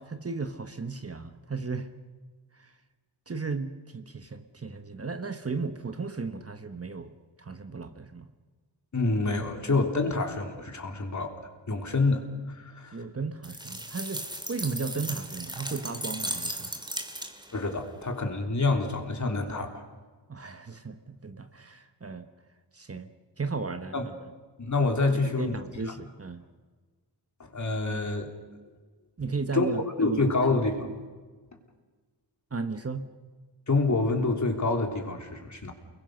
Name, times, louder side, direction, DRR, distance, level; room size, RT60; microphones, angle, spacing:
voice 1, 0.0-1.9 2.5-2.7 3.3-7.1 7.4-8.3 12.9-16.7 20.3-22.3 22.7-23.1 23.4-24.2 25.2-26.4 29.2-30.4 32.5-33.1, right 4 dB, 35° right, 8 dB, 1.3 m, -35 dB
voice 2, 8.9-11.3 11.7-13.0 17.5-19.8 23.9-24.1 24.6-25.5 27.4-28.3 29.5-30.9 33.7-35.7, left 3 dB, 45° left, 3 dB, 3.5 m, -27 dB
sound 1, 13.4-17.6, right 1 dB, 10° right, 2.4 m, -36 dB
29.5 x 21.5 x 6.6 m, 1.4 s
wide cardioid pair, 105°, 42 cm